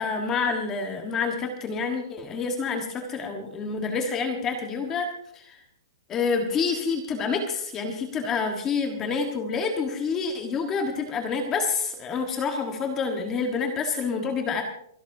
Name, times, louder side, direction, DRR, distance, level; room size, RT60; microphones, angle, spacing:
voice 1, 0.0-5.1 5.3-5.6 6.1-14.6, left 5 dB, 15° left, 4 dB, 1.4 m, -28 dB
29.0 x 12.5 x 2.7 m, 0.67 s
hypercardioid pair, 175°, 2 cm